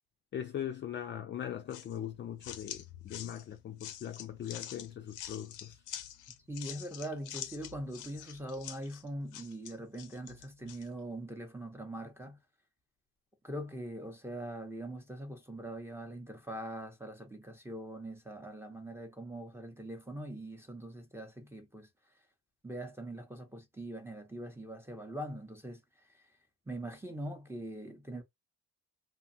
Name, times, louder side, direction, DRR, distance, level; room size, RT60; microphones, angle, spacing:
voice 1, 0.3-5.8, left 10 dB, 40° left, 0.4 m, -40 dB
sound 1, 1.7-10.9, left 11 dB, 90° left, 0.5 m, -46 dB
voice 2, 6.5-12.4 13.4-21.9 22.6-25.8 26.1-26.2 26.7-28.2, right 1 dB, 10° right, 0.7 m, -42 dB
2.6 x 2.3 x 2.6 m
cardioid pair, 90°, 30 cm